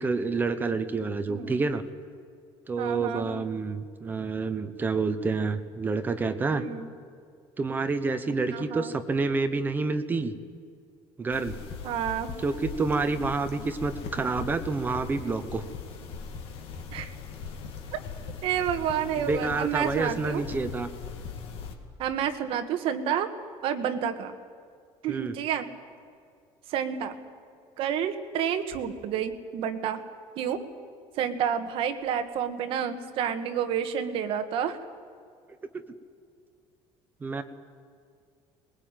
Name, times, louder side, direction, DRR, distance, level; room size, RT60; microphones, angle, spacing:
voice 1, 0.0-1.8 2.7-6.6 7.6-10.3 11.2-11.6 12.4-15.6 19.2-20.9 25.1-25.4 37.2-37.4, right 4 dB, 15° right, 9 dB, 0.9 m, -28 dB
voice 2, 1.3-1.7 2.8-3.4 6.5-6.9 8.5-8.9 11.8-12.3 16.9-17.1 17.9-18.0 18.4-20.4 22.0-23.3 23.6-24.3 25.0-25.7 26.7-27.1 27.8-30.0 30.4-30.7 31.2-34.8, right 8 dB, 50° right, 8 dB, 1.6 m, -29 dB
sound 1, 11.3-21.7, left 5 dB, 50° left, 2.4 m, -40 dB
21.5 x 21.0 x 9.1 m, 2.3 s
cardioid pair, 180°, 12 cm